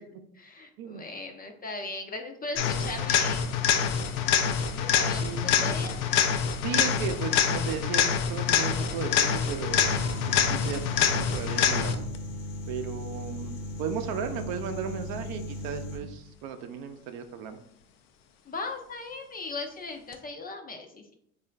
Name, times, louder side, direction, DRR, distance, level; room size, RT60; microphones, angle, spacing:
voice 1, 0.4-3.4 3.7-4.2 4.6-6.0 18.4-21.1, left 3 dB, 20° left, 5 dB, 0.4 m, -38 dB
sound 1, 2.5-12.2 20.1-20.2, left 7 dB, 75° left, 0.6 m, -26 dB
voice 2, 5.2-5.7 6.6-10.0 10.4-12.1 12.7-17.6, right 7 dB, 60° right, 7 dB, 0.6 m, -35 dB
sound 2, 9.7-16.0, left 1 dB, 60° left, 0.9 m, -37 dB
3.6 x 2.5 x 3.2 m, 0.71 s
hypercardioid pair, 75°, 42 cm